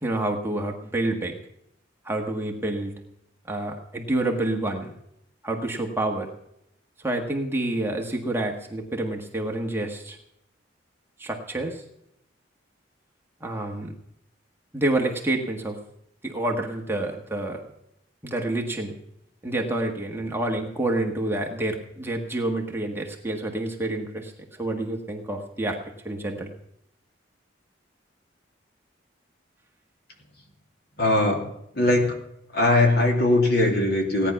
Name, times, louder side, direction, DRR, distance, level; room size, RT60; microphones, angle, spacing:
voice 1, 0.0-1.4 2.0-2.9 3.5-5.0 5.4-6.3 7.0-10.2 11.2-11.8 13.4-13.9 14.7-15.8 16.2-17.6 18.2-19.0 19.4-24.3 24.6-25.8 26.0-26.5, right 1 dB, 10° right, 1 dB, 1.5 m, -28 dB
voice 2, 31.0-31.5 31.7-32.2 32.5-34.3, left 2 dB, 55° left, 2 dB, 3.0 m, -20 dB
17.5 x 10.0 x 5.9 m, 0.78 s
head